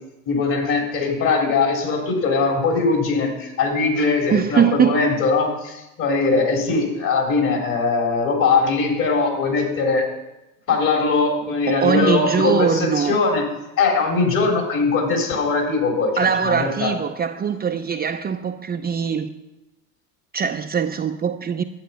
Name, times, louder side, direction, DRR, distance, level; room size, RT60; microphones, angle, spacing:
voice 1, 0.3-10.1 10.7-13.5 13.8-16.9, left 4 dB, 50° left, 3.7 m, -21 dB
voice 2, 4.3-5.0 11.7-13.2 16.2-19.3 20.3-21.6, right 7 dB, 25° right, 0.6 m, -21 dB
11.5 x 8.5 x 5.7 m
hypercardioid pair, 80°, 40 cm